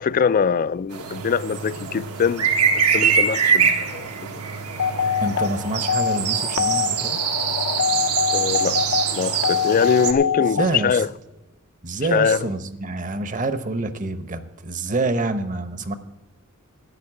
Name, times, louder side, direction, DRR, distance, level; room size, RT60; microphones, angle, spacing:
voice 1, 0.0-2.5 2.7-4.4 8.3-8.8 9.1-11.1 12.1-12.4, left 6 dB, 40° left, 0.3 m, -22 dB
sound 1, 0.9-10.1, right 6 dB, 85° right, 1.3 m, -24 dB
sound 2, 4.8-10.7, left 7 dB, 65° left, 0.7 m, -24 dB
voice 2, 5.2-7.2 10.6-11.0 11.8-15.9, right 2 dB, 35° right, 0.9 m, -27 dB
11.0 x 8.5 x 8.5 m
head